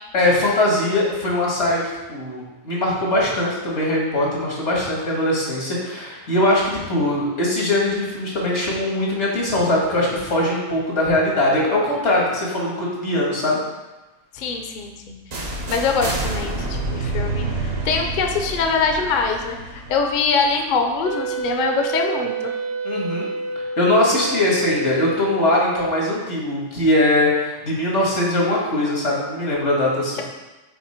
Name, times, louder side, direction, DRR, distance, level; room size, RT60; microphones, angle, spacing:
voice 1, 0.1-1.8 2.1-13.6 22.8-23.3 23.8-30.2, left 1 dB, 85° left, -4 dB, 2.0 m, -21 dB
voice 2, 14.3-15.2 15.5-22.5, left 4 dB, 55° left, 4 dB, 0.7 m, -23 dB
sound 1, 15.3-21.1, right 2 dB, 65° right, 1.1 m, -28 dB
Wind instrument woodwind instrument, 21.0-26.2, right 4 dB, 85° right, 1.0 m, -29 dB
5.9 x 4.1 x 4.3 m, 1.1 s
omnidirectional pair, 1.2 m